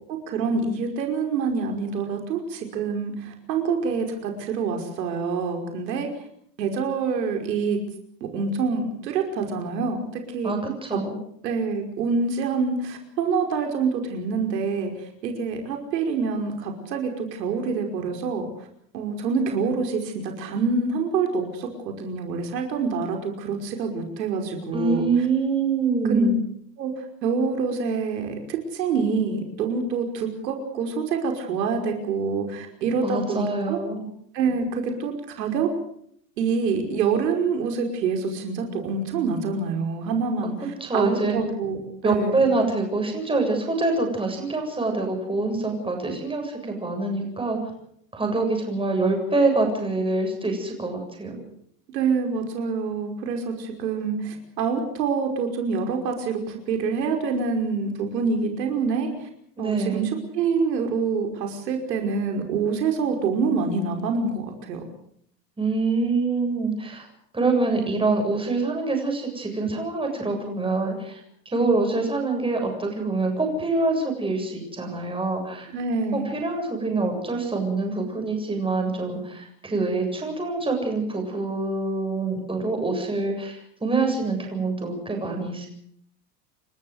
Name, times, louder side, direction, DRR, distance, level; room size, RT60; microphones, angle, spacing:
voice 1, 0.1-6.1 6.6-7.8 8.2-10.5 10.9-11.0 11.4-14.9 15.2-18.5 18.9-25.1 26.1-26.3 26.8-26.9 27.2-33.8 34.3-35.7 36.4-41.8 42.0-42.5 51.9-59.3 59.6-64.8 75.7-76.3, right 5 dB, 80° right, 4 dB, 5.5 m, -26 dB
voice 2, 10.4-11.2 24.7-26.4 33.0-34.1 40.8-41.4 42.0-47.6 48.1-51.4 59.6-60.1 65.6-67.1 67.3-71.2 71.5-75.7 76.1-85.7, right 3 dB, 10° right, 2 dB, 7.6 m, -25 dB
29.5 x 14.0 x 8.0 m, 0.67 s
hypercardioid pair, 115°, 49 cm